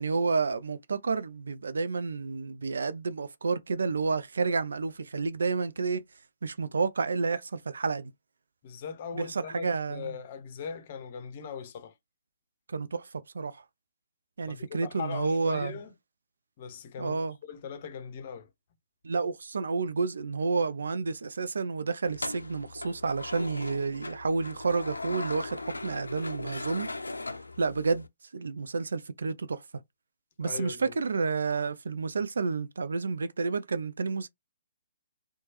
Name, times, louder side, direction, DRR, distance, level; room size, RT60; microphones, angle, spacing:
voice 1, 0.0-6.0 6.4-8.1 9.1-10.2 12.7-13.1 13.3-13.6 14.4-15.8 17.0-17.4 19.0-26.9 27.6-28.1 28.3-29.6 30.4-34.3, right 4 dB, 65° right, 0.4 m, -30 dB
voice 2, 8.6-11.9 14.5-15.9 16.6-18.5 30.4-30.9, left 6 dB, 40° left, 0.6 m, -40 dB
sound 1, 22.0-28.1, left 2 dB, 80° left, 0.4 m, -39 dB
2.9 x 2.2 x 2.9 m
figure-of-eight pair, 130°, 0 cm